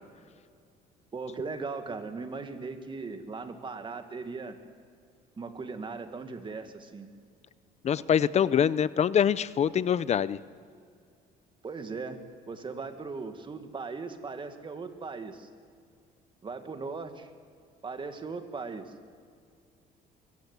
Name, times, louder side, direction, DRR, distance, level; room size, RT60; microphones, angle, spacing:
voice 1, 1.1-4.6 5.4-7.1 11.6-12.2 12.5-15.5 16.4-17.3 17.8-18.9, right 4 dB, 30° right, 7 dB, 1.9 m, -38 dB
voice 2, 7.8-10.4, left 8 dB, 40° left, 18 dB, 0.6 m, -24 dB
24.0 x 15.0 x 8.3 m, 2.2 s
cardioid pair, 110°, 17 cm